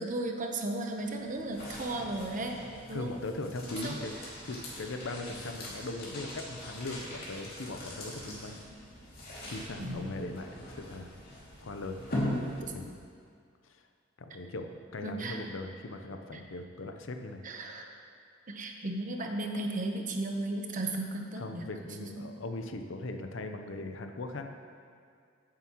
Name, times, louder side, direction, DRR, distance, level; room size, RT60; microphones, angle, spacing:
voice 1, 0.0-2.6 2.9-3.1 3.8-4.0 9.8-10.1 14.3-14.4 15.0-15.4 16.3-16.4 17.4-17.9 18.5-21.7 22.2-22.3, right 2 dB, 40° right, 3 dB, 0.9 m, -35 dB
sound 1, 0.9-13.0, left 1 dB, 55° left, 2.4 m, -41 dB
voice 2, 2.9-4.1 4.4-8.5 9.5-11.1 11.6-12.1 12.6-13.0 14.2-17.4 21.4-24.5, left 2 dB, 75° left, 6 dB, 0.7 m, -39 dB
14.5 x 7.5 x 3.0 m, 2.2 s
head